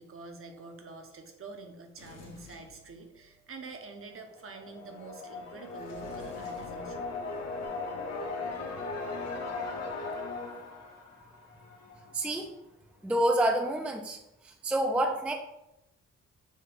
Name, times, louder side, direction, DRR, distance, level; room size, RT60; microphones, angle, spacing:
voice 1, 0.0-7.1, right 3 dB, 45° right, 4 dB, 0.8 m, -46 dB
Sliding door, 2.0-3.5 5.7-7.7, left 4 dB, 85° left, 1.2 m, -52 dB
sound 1, 4.3-12.1, left 3 dB, 55° left, 0.9 m, -38 dB
voice 2, 12.1-12.5 13.0-14.2 14.4-15.3, right 1 dB, 5° right, 3 dB, 0.4 m, -28 dB
6.4 x 2.3 x 3.4 m, 0.89 s
cardioid pair, 80°, 31 cm